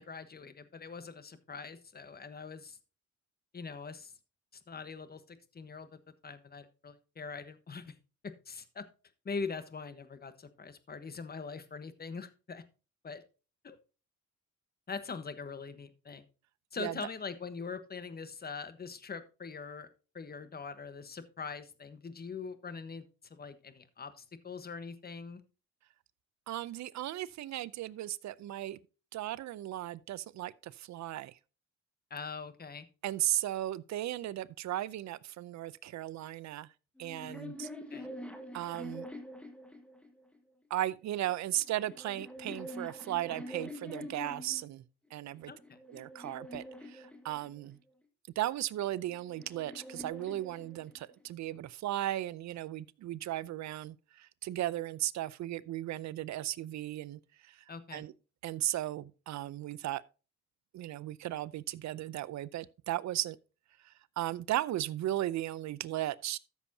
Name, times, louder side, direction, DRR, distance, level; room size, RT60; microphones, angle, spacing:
voice 1, 0.0-2.8 3.5-4.1 4.5-7.9 8.2-8.8 9.2-12.6 13.0-13.2 13.6-13.8 14.9-16.2 16.7-19.9 20.1-23.0 23.3-25.4 32.1-32.9 37.3-37.4 37.9-38.1 45.5-45.8 57.7-58.0, left 5 dB, 30° left, 1.2 m, -43 dB
voice 2, 26.5-28.8 29.1-31.4 33.0-36.7 37.0-37.7 38.5-39.1 40.7-44.8 45.1-45.5 45.9-47.8 48.4-57.6 57.9-58.1 58.4-60.0 60.7-63.4 63.8-66.4, right 14 dB, 65° right, 0.5 m, -36 dB
sound 1, 37.0-40.4 41.3-44.7 45.3-47.8 48.8-51.2, left 1 dB, 5° left, 1.5 m, -46 dB
13.5 x 7.1 x 2.8 m
cardioid pair, 90°, 30 cm